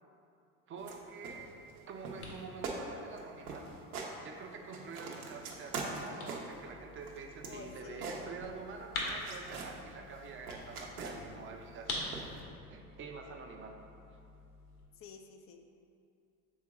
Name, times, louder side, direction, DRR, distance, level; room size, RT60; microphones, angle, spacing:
voice 1, 0.7-1.6 1.9-3.8 4.2-13.8, right 4 dB, 25° right, 3 dB, 0.7 m, -47 dB
sound 1, 0.8-1.0 1.2-1.8 2.0-2.4 2.6-2.8 3.1-3.2 3.5-4.1 4.5-6.6 7.0-8.7 9.0-9.7 10.1-11.4 12.1-12.4, right 4 dB, 75° right, 1.0 m, -42 dB
sound 2, 1.3-14.8, left 2 dB, 70° left, 1.4 m, -47 dB
voice 2, 7.4-8.1 15.0-15.6, left 5 dB, 30° left, 5 dB, 0.5 m, -50 dB
7.4 x 3.7 x 3.7 m, 2.5 s
hypercardioid pair, 75°, 45 cm